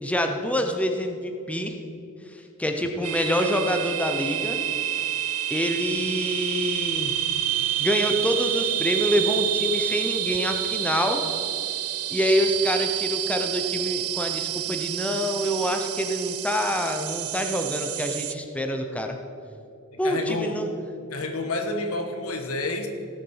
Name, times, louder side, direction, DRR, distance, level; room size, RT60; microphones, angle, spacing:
voice 1, 0.0-1.8 2.3-4.6 5.5-7.2 7.8-11.2 12.1-19.2 20.0-20.7, equal, 5° left, 4 dB, 0.8 m, -26 dB
sound 1, 3.0-18.3, right 13 dB, 85° right, 0.6 m, -28 dB
voice 2, 19.9-20.6 21.1-22.9, left 2 dB, 75° left, 6 dB, 1.4 m, -29 dB
17.0 x 7.2 x 5.6 m, 2.6 s
head